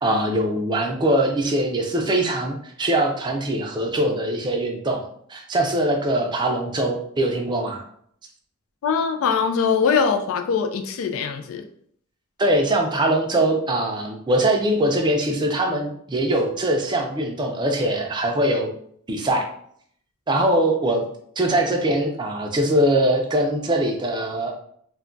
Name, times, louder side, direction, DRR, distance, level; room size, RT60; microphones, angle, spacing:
voice 1, 0.0-5.0 5.3-7.8 12.4-18.7 19.1-19.5 20.3-21.0 21.4-24.5, right 1 dB, 20° right, 1 dB, 0.4 m, -22 dB
voice 2, 8.8-11.6, left 6 dB, 65° left, 6 dB, 0.3 m, -22 dB
2.2 x 2.2 x 3.8 m, 0.64 s
head